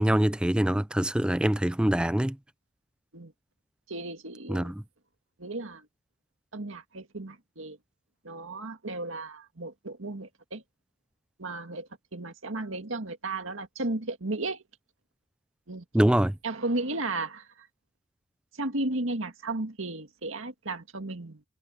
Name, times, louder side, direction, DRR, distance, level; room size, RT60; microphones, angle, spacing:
voice 1, 0.0-2.4 4.5-4.7 15.9-16.3, right 1 dB, 5° right, 0.3 m, -24 dB
voice 2, 3.9-4.7 5.4-5.9 6.5-7.8 8.2-10.6 11.4-14.6 15.7-15.8 16.4-17.7 18.5-21.4, right 2 dB, 70° right, 2.0 m, -34 dB
head